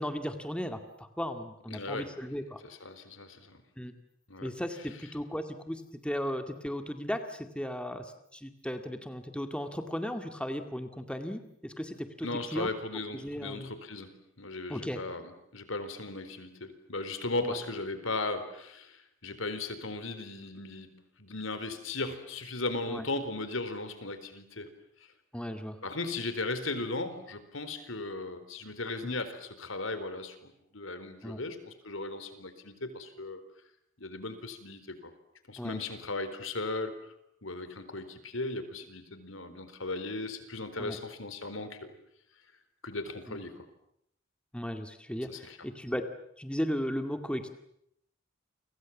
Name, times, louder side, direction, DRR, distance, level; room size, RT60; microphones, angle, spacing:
voice 1, 0.0-2.6 3.8-3.9 4.4-13.7 14.7-15.0 17.4-17.6 22.9-23.0 25.3-25.8 29.0-29.2 31.2-31.4 35.6-35.9 40.8-41.0 43.3-43.4 44.5-47.5, equal, 5° left, 7 dB, 2.1 m, -36 dB
voice 2, 1.7-2.1 2.6-3.6 4.3-4.5 12.2-24.7 25.8-33.4 34.0-35.1 35.5-37.0 37.4-41.8 42.8-43.6 45.3-45.6, left 2 dB, 75° left, 11 dB, 4.1 m, -37 dB
30.0 x 25.0 x 7.3 m, 0.74 s
head